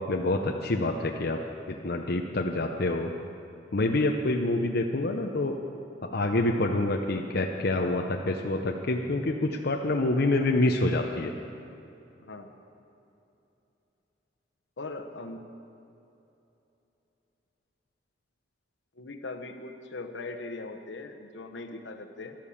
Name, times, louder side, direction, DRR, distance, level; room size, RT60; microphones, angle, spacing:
voice 1, 0.0-1.4 1.7-3.1 3.7-5.6 6.0-11.3, left 2 dB, 60° left, 2 dB, 0.8 m, -27 dB
voice 2, 12.2-12.5 14.8-15.4 19.0-22.4, left 3 dB, 80° left, 5 dB, 1.2 m, -40 dB
13.5 x 12.0 x 7.2 m, 2.8 s
head